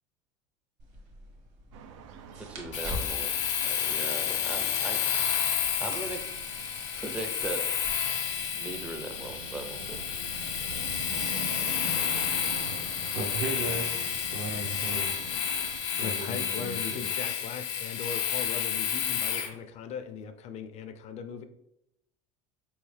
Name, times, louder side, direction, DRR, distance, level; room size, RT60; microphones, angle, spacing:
sound 1, 0.8-7.9, equal, 50° right, 1.2 m, -45 dB
sound 2, 1.7-15.8, right 5 dB, 90° right, 0.5 m, -45 dB
voice 1, 2.3-3.4 3.6-5.0 5.8-6.2 6.9-7.7 8.5-10.0, right 2 dB, 10° right, 5 dB, 0.5 m, -38 dB
Domestic sounds home sounds, 2.7-19.5, left 9 dB, 80° left, 0.7 m, -31 dB
voice 2, 13.1-15.1 15.9-17.0, right 2 dB, 65° right, 3 dB, 0.9 m, -36 dB
voice 3, 16.0-21.4, left 6 dB, 45° left, 9 dB, 0.5 m, -39 dB
4.3 x 3.1 x 3.2 m, 0.80 s
supercardioid pair, 110°, 16 cm